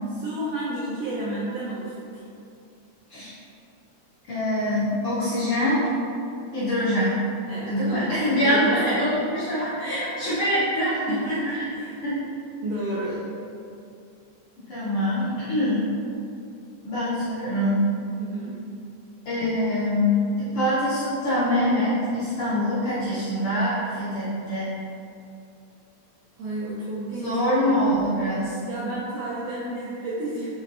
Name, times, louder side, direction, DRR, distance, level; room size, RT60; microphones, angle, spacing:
voice 1, 0.2-2.2 7.5-9.1 9.9-10.4 11.1-12.0 12.6-13.3 18.2-18.6 26.4-27.4 27.7-28.2 28.7-30.5, right 1 dB, 75° right, -6 dB, 1.5 m, -31 dB
voice 2, 4.3-5.9 6.5-7.2 7.7-11.4 12.0-12.1 12.5-12.6 14.7-15.9 16.8-17.9 19.2-24.7 27.2-28.6, left 1 dB, 65° left, -11 dB, 1.4 m, -24 dB
5.8 x 3.0 x 2.6 m, 2.5 s
omnidirectional pair, 3.4 m